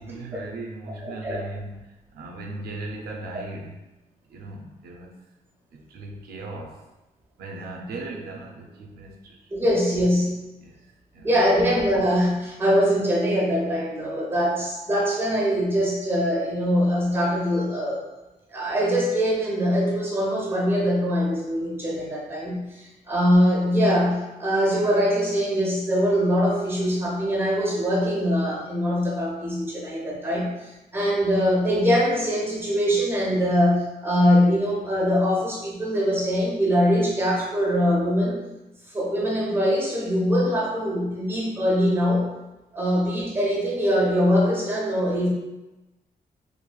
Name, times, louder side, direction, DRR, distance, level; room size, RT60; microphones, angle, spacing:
voice 1, 0.0-3.8 4.3-5.2 5.7-6.9 7.4-9.5 10.6-11.3, right 2 dB, 85° right, 0 dB, 0.4 m, -38 dB
voice 2, 1.0-1.4 9.5-10.4 11.2-18.0 18.5-30.5 30.9-38.4 38.9-42.3 42.7-45.3, equal, 15° right, -3 dB, 0.9 m, -22 dB
3.0 x 2.5 x 2.2 m, 1.0 s
cardioid pair, 115°, 16 cm